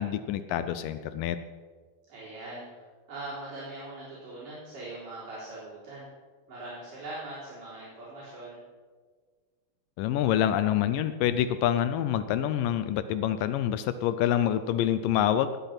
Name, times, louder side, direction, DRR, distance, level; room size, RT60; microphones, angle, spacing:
voice 1, 0.0-1.4 10.0-15.5, left 11 dB, 80° left, 12 dB, 2.2 m, -26 dB
voice 2, 2.1-6.1 6.5-8.6, right 2 dB, 65° right, -9 dB, 5.5 m, -41 dB
19.0 x 9.4 x 5.9 m, 1.5 s
omnidirectional pair, 3.9 m